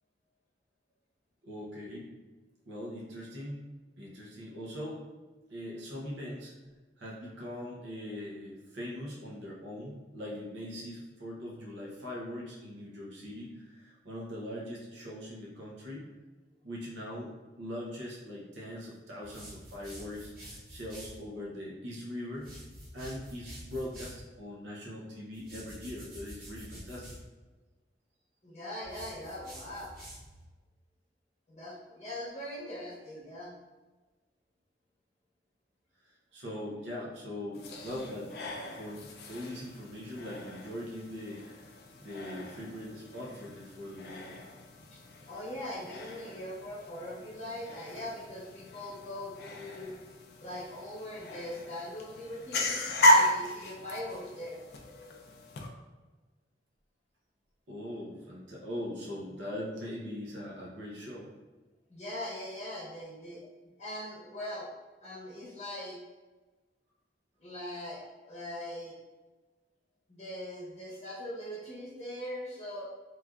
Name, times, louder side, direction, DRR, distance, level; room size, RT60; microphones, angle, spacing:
voice 1, 1.4-2.1 2.7-3.7 4.0-5.1 5.5-6.5 7.0-16.1 16.6-22.5 22.9-27.2 36.3-38.3 38.7-41.6 42.0-44.4 57.7-61.3, left 1 dB, 85° right, -4 dB, 0.6 m, -41 dB
sound 1, 19.2-21.2 22.3-24.2 25.3-27.2 28.8-30.4, equal, 55° right, 1.3 m, -48 dB
voice 2, 28.4-29.9 31.5-33.5 44.9-45.0 45.3-49.9 50.4-54.6 61.9-63.4 63.8-64.7 65.0-66.0 67.4-68.9 70.1-72.8, left 1 dB, 40° left, -9 dB, 0.7 m, -41 dB
sound 2, 37.5-55.7, equal, 60° left, 0.4 m, -34 dB
3.1 x 2.4 x 2.3 m, 1.3 s
head